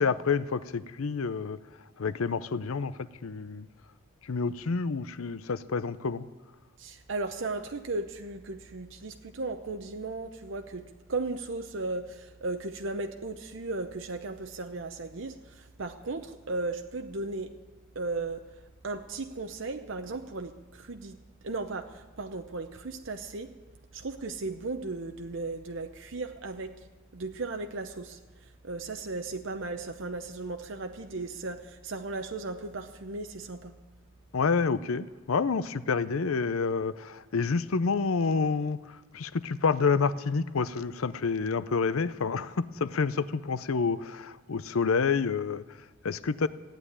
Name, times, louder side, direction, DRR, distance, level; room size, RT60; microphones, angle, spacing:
voice 1, 0.0-1.6 2.0-3.7 4.2-6.3 34.3-45.6 46.0-46.5, left 5 dB, 80° left, 16 dB, 0.6 m, -28 dB
voice 2, 6.8-10.8 11.1-17.5 18.0-18.4 18.8-21.2 21.4-23.5 23.9-26.7 27.1-28.2 28.6-33.7, right 3 dB, 60° right, 6 dB, 0.7 m, -36 dB
15.0 x 9.2 x 9.9 m, 1.2 s
head